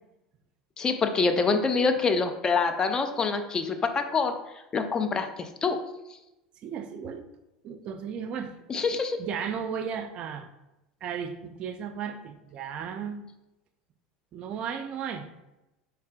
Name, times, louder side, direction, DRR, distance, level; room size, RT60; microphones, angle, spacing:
voice 1, 0.8-4.4 4.7-5.8 8.7-9.2, left 4 dB, 30° left, 6 dB, 0.5 m, -26 dB
voice 2, 6.6-7.3 7.6-8.5 9.2-10.5 11.0-13.3 14.3-15.3, right 7 dB, 45° right, 8 dB, 0.4 m, -35 dB
4.3 x 3.3 x 2.4 m, 0.93 s
hypercardioid pair, 80°, 2 cm